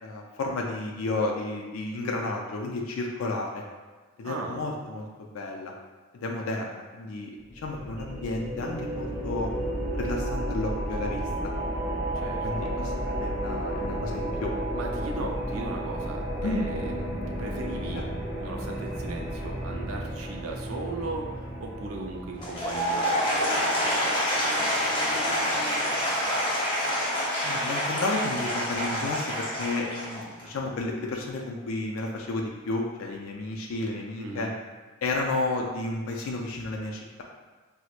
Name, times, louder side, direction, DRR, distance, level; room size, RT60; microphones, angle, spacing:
voice 1, 0.0-3.6 4.2-5.7 6.1-9.6 10.0-11.5 12.4-14.5 16.4-16.7 17.9-18.0 27.4-34.5 35.0-37.2, left 2 dB, 75° left, 0 dB, 0.4 m, -32 dB
voice 2, 4.2-4.7 12.1-12.7 14.7-18.0 18.3-26.3 34.2-34.6, right 2 dB, 75° right, 2 dB, 0.5 m, -38 dB
sound 1, 7.5-22.9, right 1 dB, 15° right, 0.6 m, -32 dB
Applause / Crowd, 22.3-30.5, equal, 25° left, 0.8 m, -27 dB
4.3 x 2.1 x 2.4 m, 1.3 s
head